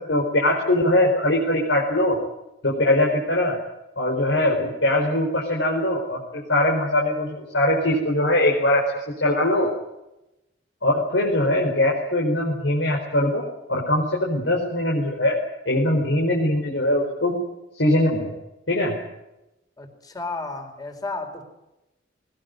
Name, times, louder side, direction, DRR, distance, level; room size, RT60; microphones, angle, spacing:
voice 1, 0.0-2.2 2.6-3.6 4.0-6.2 6.5-8.9 9.2-9.7 10.8-13.4 13.7-15.4 15.6-17.4 17.8-18.3 18.7-19.0, left 1 dB, 85° left, -2 dB, 4.8 m, -21 dB
voice 2, 19.8-21.4, left 3 dB, 20° left, 5 dB, 4.2 m, -32 dB
20.5 x 20.0 x 9.4 m, 0.93 s
head